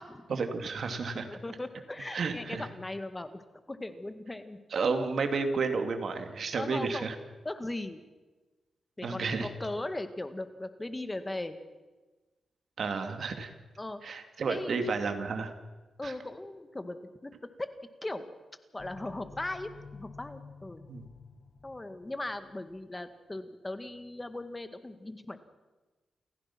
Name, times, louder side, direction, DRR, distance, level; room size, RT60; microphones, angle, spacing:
voice 1, 0.3-1.3 2.1-2.7 4.7-7.2 9.0-9.5 12.8-13.5 14.0-15.5 16.0-16.1 20.9-21.1, right 4 dB, 65° right, 6 dB, 2.6 m, -31 dB
voice 2, 1.3-3.4 3.7-4.6 5.7-5.9 6.5-7.1 7.4-8.0 9.0-11.6 13.8-14.0 14.5-14.8 16.0-17.3 17.6-17.7 18.0-18.3 18.7-20.9 21.6-25.4, left 2 dB, 20° left, 10 dB, 1.8 m, -38 dB
sound 1, 18.8-22.8, left 4 dB, 55° left, 1.4 m, -51 dB
29.0 x 15.0 x 6.1 m, 1.2 s
cardioid pair, 85°, 0 cm